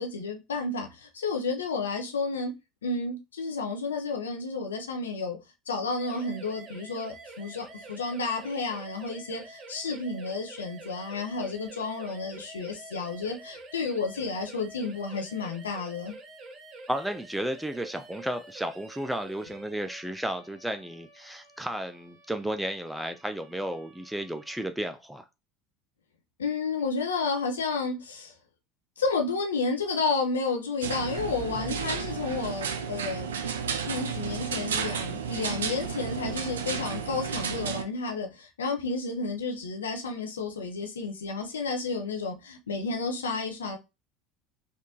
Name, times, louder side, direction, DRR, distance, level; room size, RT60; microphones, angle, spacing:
voice 1, 0.0-2.5 2.8-5.4 5.7-16.1 26.4-28.3 29.0-43.8, left 4 dB, 80° left, 0.6 m, -31 dB
sound 1, 6.0-24.7, right 2 dB, 45° right, 0.7 m, -48 dB
voice 2, 16.9-25.3, right 1 dB, 5° right, 0.3 m, -33 dB
sound 2, 30.8-37.8, right 6 dB, 80° right, 0.4 m, -32 dB
sound 3, 31.2-33.3, right 6 dB, 20° left, 1.0 m, -45 dB
3.4 x 2.4 x 2.7 m
figure-of-eight pair, 70°, 0 cm